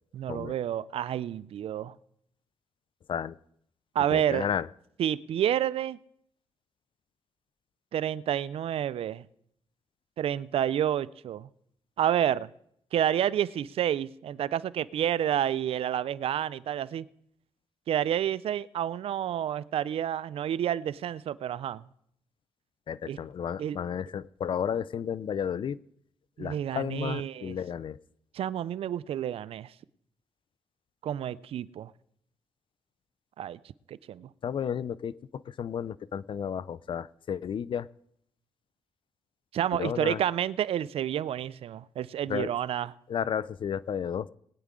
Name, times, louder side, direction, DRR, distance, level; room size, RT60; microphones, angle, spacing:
voice 1, 0.1-2.0 3.9-4.5 5.0-6.0 7.9-9.3 10.2-11.5 12.0-12.5 12.9-17.0 17.9-21.8 23.1-23.2 23.6-23.8 26.4-27.6 28.3-29.7 31.0-31.9 33.4-33.6 33.9-34.3 39.5-42.9, right 10 dB, 75° right, 0.4 m, -29 dB
voice 2, 4.1-4.7 22.9-25.8 26.4-28.0 34.4-37.9 39.7-40.2 42.3-42.5 43.1-44.3, left 8 dB, 55° left, 0.4 m, -32 dB
20.0 x 9.7 x 3.7 m
cardioid pair, 75°, 10 cm